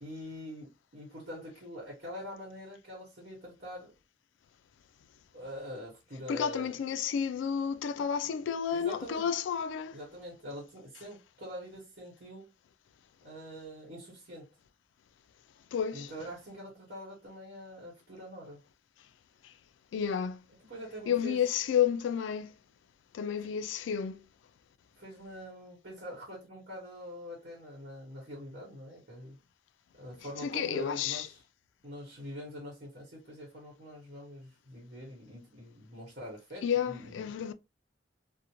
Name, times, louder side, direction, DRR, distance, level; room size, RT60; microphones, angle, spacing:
voice 1, 0.0-3.9 5.3-6.7 8.7-9.3 9.9-12.5 13.2-14.5 15.9-18.6 20.7-21.4 25.0-29.4 30.0-31.4 31.8-37.3, equal, 55° right, 1.2 m, -44 dB
voice 2, 6.3-10.0 15.7-16.1 19.9-20.4 21.1-22.5 23.1-24.2 30.4-31.3 36.6-37.5, left 8 dB, 85° left, 0.3 m, -31 dB
2.5 x 2.1 x 2.9 m
head